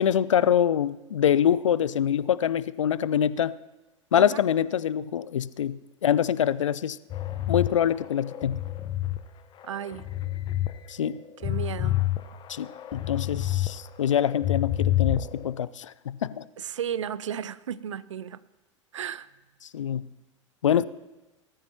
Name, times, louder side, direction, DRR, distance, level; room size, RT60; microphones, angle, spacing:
voice 1, 0.0-3.5 4.1-7.0 7.5-8.6 10.9-11.2 12.5-16.5 19.7-20.1 20.6-20.8, left 9 dB, 75° left, 0.5 m, -25 dB
sound 1, 7.1-9.2 9.6-10.7 11.1-13.7 14.0-15.5, left 14 dB, 30° left, 0.8 m, -28 dB
voice 2, 9.6-10.1 11.4-12.0 16.6-18.4 18.9-19.3 20.7-20.8, right 9 dB, 70° right, 0.6 m, -34 dB
19.0 x 13.5 x 2.8 m
figure-of-eight pair, 90°, 16 cm